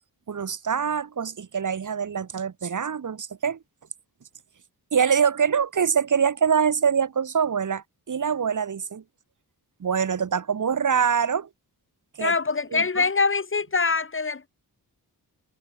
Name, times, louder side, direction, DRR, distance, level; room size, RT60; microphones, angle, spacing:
voice 1, 0.3-3.6 4.9-9.0 9.8-11.5 12.2-12.3 12.7-13.0, right 7 dB, 50° right, 1.6 m, -24 dB
voice 2, 12.2-14.5, left 4 dB, 30° left, 1.6 m, -24 dB
wide cardioid pair, 175°, 39 cm